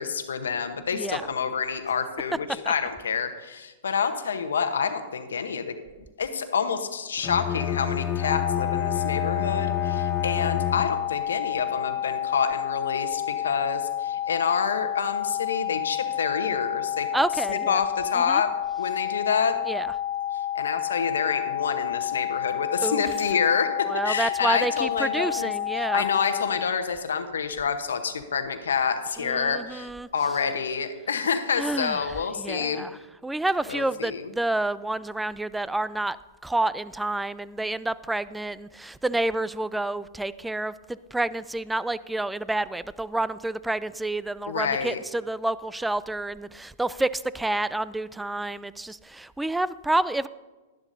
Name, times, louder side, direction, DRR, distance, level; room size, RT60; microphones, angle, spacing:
voice 1, 0.0-5.7 6.2-17.1 17.5-18.5 18.8-19.6 20.5-32.8 33.7-34.3 44.5-45.0, left 6 dB, 85° left, 8 dB, 1.0 m, -28 dB
Bowed string instrument, 7.2-11.3, left 10 dB, 30° left, 0.6 m, -29 dB
sound 1, 8.2-26.5, left 11 dB, 35° right, 3.6 m, -30 dB
voice 2, 17.1-17.8 18.3-18.4 19.7-19.9 22.8-23.0 23.9-26.0 29.2-30.1 31.6-32.0 32.4-33.0 33.2-36.2 36.4-50.3, right 2 dB, 5° right, 17 dB, 0.3 m, -29 dB
12.0 x 11.0 x 2.7 m, 1.2 s
hypercardioid pair, 115°, 0 cm